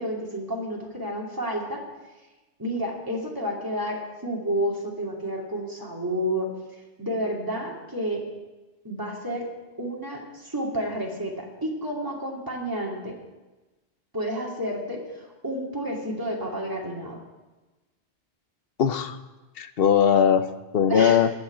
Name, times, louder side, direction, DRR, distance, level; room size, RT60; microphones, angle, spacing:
voice 1, 0.0-1.8 2.6-6.5 7.0-8.2 8.8-9.5 9.8-13.2 14.1-17.2 20.9-21.2, equal, 20° right, -2 dB, 2.5 m, -30 dB
voice 2, 18.8-19.2 19.6-21.3, left 8 dB, 60° left, 11 dB, 0.9 m, -20 dB
15.5 x 5.7 x 9.9 m, 1.2 s
omnidirectional pair, 1.2 m